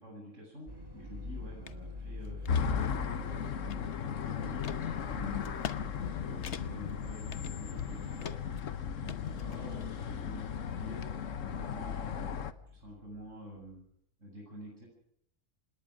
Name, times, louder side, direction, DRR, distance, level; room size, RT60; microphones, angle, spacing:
voice 1, 0.0-8.3 8.8-11.0 11.4-12.3 12.7-13.8 14.2-14.9, equal, 75° right, -1 dB, 8.6 m, -48 dB
sound 1, 0.7-13.6, left 3 dB, 20° right, 3.4 m, -45 dB
sound 2, 1.7-1.8 2.2-2.7 3.2-4.1 4.6-4.8 5.4-5.8 6.1-6.2 6.4-6.9 7.3-7.9 8.2-8.6 9.1-9.9, left 7 dB, 65° left, 1.3 m, -43 dB
sound 3, 2.5-12.5, left 7 dB, 90° left, 1.4 m, -36 dB
27.0 x 20.5 x 5.1 m, 0.70 s
omnidirectional pair, 1.3 m